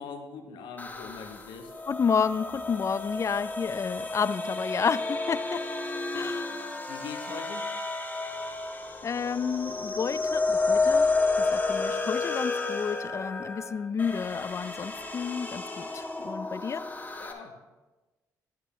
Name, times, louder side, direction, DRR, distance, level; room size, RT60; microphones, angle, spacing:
voice 1, 0.0-1.7 6.9-7.7 17.2-17.6, left 5 dB, 80° left, 5 dB, 1.0 m, -41 dB
sound 1, 0.8-17.3, left 3 dB, 25° left, 1.3 m, -31 dB
voice 2, 1.9-5.6 6.1-6.6 9.0-11.1 11.4-16.9, left 6 dB, 40° left, 16 dB, 0.4 m, -30 dB
10.0 x 8.0 x 3.2 m, 1.2 s
supercardioid pair, 60°, 8 cm